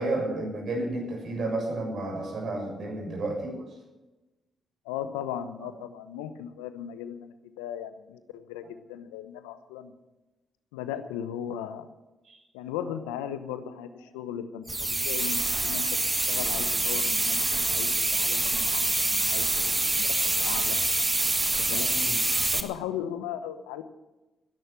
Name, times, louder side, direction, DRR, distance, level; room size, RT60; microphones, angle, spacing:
voice 1, 0.0-3.7 5.6-5.7 21.9-22.2, right 2 dB, 60° right, 1 dB, 7.3 m, -31 dB
voice 2, 4.8-9.9 10.7-11.9 12.5-15.9 16.3-17.4 17.7-20.8 21.6-22.2 22.5-23.8, left 9 dB, 85° left, 11 dB, 0.9 m, -37 dB
sound 1, 14.7-22.6, right 2 dB, 25° right, 1.7 m, -26 dB
18.5 x 11.0 x 6.1 m, 1.1 s
hypercardioid pair, 45°, 0 cm